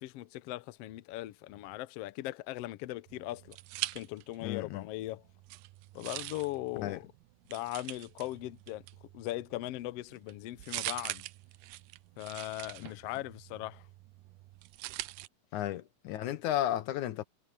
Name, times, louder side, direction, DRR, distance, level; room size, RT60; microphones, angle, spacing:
voice 1, 0.0-3.6 3.9-5.2 5.9-7.0 7.5-8.8 9.1-11.2 12.2-13.9, left 16 dB, 90° left, 1.3 m, -39 dB
sound 1, 3.1-4.6 4.9-15.3, right 18 dB, 85° right, 2.1 m, -44 dB
voice 2, 4.4-4.9 6.8-7.0 15.5-17.2, left 12 dB, 75° left, 2.3 m, -33 dB
omnidirectional pair, 3.7 m